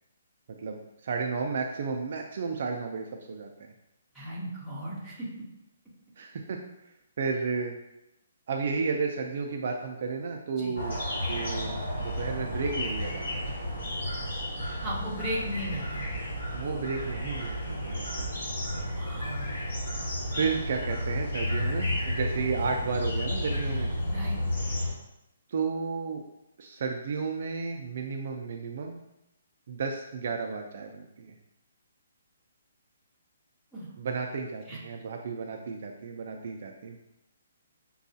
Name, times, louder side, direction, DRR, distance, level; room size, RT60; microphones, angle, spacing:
voice 1, 0.6-3.7 6.2-6.6 7.2-7.7 8.5-13.5 16.5-18.3 20.3-23.9 25.5-26.2 26.6-29.0 29.7-31.3 34.0-37.0, right 5 dB, 45° right, 2 dB, 0.3 m, -33 dB
voice 2, 4.1-5.3 10.6-10.7 14.8-16.1 18.9-19.5 24.1-24.4 33.7-33.9 34.7-34.8, equal, ahead, -10 dB, 0.7 m, -36 dB
sound 1, 10.8-24.9, left 1 dB, 65° left, 1.4 m, -32 dB
6.1 x 2.3 x 2.6 m, 0.87 s
hypercardioid pair, 175°, 0 cm